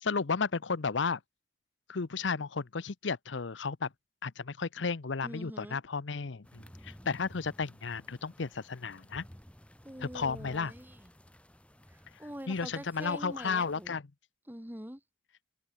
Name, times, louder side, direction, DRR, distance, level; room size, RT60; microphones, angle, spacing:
voice 1, 0.0-1.2 1.9-3.9 4.2-9.2 10.0-10.7 12.5-14.0, left 5 dB, 85° left, 0.8 m, -33 dB
voice 2, 5.2-5.8 9.8-11.1 11.9-14.0 14.5-15.0, equal, 10° right, 2.9 m, -45 dB
sound 1, 6.4-13.9, equal, 5° left, 3.4 m, -55 dB
open air
head